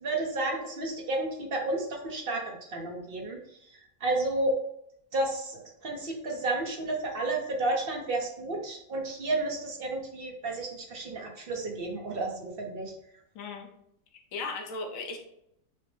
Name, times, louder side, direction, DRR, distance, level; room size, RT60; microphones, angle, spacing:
voice 1, 0.0-3.4 4.0-4.5 5.1-12.9, right 2 dB, 50° right, 0 dB, 0.7 m, -31 dB
voice 2, 13.3-13.7 14.3-15.2, left 3 dB, 65° left, 3 dB, 1.1 m, -36 dB
5.9 x 2.0 x 3.1 m, 0.75 s
omnidirectional pair, 1.7 m